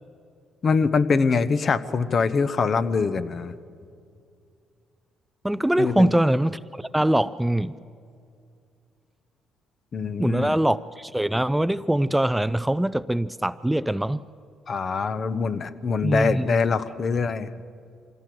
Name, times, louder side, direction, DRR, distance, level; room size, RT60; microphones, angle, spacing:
voice 1, 0.6-3.5 5.8-6.1 9.9-10.6 14.7-17.5, left 5 dB, 50° left, 1.0 m, -24 dB
voice 2, 5.4-7.7 10.2-14.2 16.0-16.6, right 1 dB, 5° right, 0.4 m, -23 dB
24.5 x 16.5 x 7.8 m
supercardioid pair, 70°, 0 cm